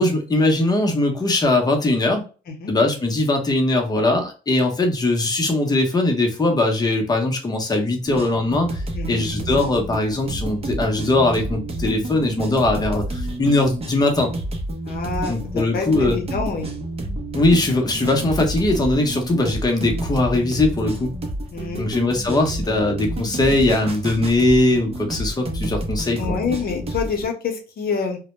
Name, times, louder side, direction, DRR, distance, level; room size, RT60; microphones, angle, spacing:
voice 1, 0.0-2.2 2.7-14.3 15.3-16.2 17.3-21.1 21.8-26.4, left 2 dB, 20° left, 3 dB, 0.7 m, -20 dB
sound 1, 8.0-27.2, right 1 dB, 30° right, 0.6 m, -29 dB
voice 2, 14.9-16.7 21.5-21.9 26.2-28.2, left 5 dB, 55° left, 3 dB, 0.8 m, -27 dB
2.1 x 2.1 x 2.9 m, 0.35 s
cardioid pair, 100°, 19 cm